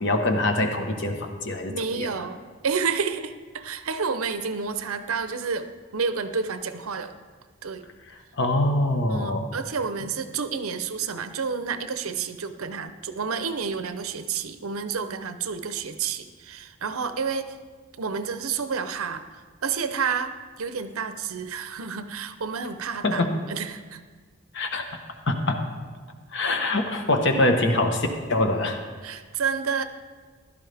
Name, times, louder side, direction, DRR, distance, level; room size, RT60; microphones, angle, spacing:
voice 1, 0.0-2.1 8.4-9.5 23.0-23.3 24.5-24.8 25.3-25.7 26.3-28.8, left 2 dB, 55° left, 5 dB, 1.2 m, -24 dB
voice 2, 1.7-7.1 7.6-7.9 9.1-17.6 18.0-24.0 29.0-29.8, right 5 dB, 85° right, 10 dB, 0.7 m, -30 dB
15.0 x 12.0 x 3.5 m, 1.5 s
head